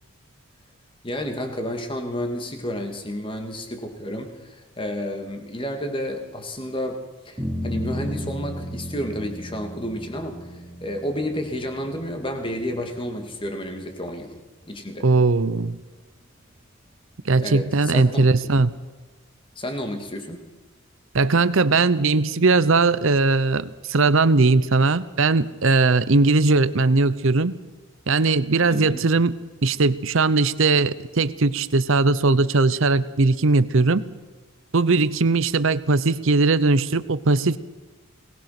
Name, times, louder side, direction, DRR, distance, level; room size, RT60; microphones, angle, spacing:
voice 1, 1.0-14.4 14.7-15.1 17.4-18.2 19.6-20.4 28.7-29.0, equal, 20° left, 5 dB, 2.3 m, -31 dB
sound 1, 7.4-13.9, equal, 15° right, 4.3 m, -34 dB
voice 2, 15.0-15.8 17.2-18.7 21.1-27.6 28.1-34.1 34.7-37.6, right 3 dB, 60° right, 16 dB, 0.7 m, -19 dB
22.5 x 19.5 x 6.0 m, 1.2 s
head